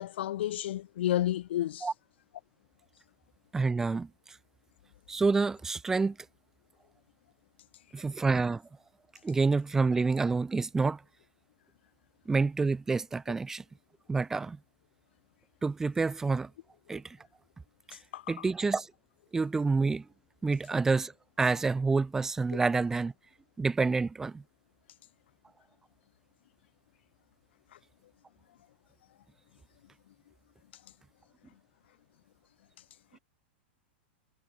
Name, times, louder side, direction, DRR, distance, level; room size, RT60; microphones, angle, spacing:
voice 1, 0.0-1.9 18.1-18.4, left 13 dB, 75° left, 0.5 m, -31 dB
voice 2, 3.5-4.4 5.1-6.2 7.9-8.6 9.2-11.0 12.3-13.6 14.1-14.6 15.6-16.5 16.9-17.2 17.9-18.0 18.3-18.9 19.3-20.1 20.4-21.1 21.4-23.1 23.6-24.4, right 4 dB, 5° right, 0.7 m, -28 dB
supercardioid pair, 165°, 6 cm